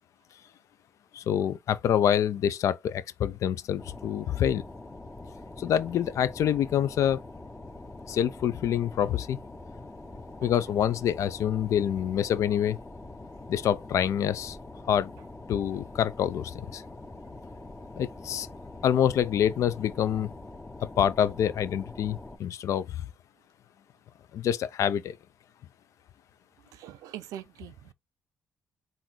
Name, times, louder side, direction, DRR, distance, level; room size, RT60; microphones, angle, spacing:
voice 1, 1.1-4.6 5.6-7.2 8.1-9.4 10.4-12.8 13.5-14.6 14.9-15.1 15.5-16.8 18.0-18.5 18.8-20.3 20.8-23.0 24.3-25.2, left 9 dB, 70° left, 0.5 m, -26 dB
sound 1, 3.8-22.4, left 2 dB, 15° left, 0.8 m, -44 dB
voice 2, 26.7-27.9, right 11 dB, 90° right, 0.4 m, -43 dB
3.9 x 2.7 x 4.4 m
cardioid pair, 90°, 6 cm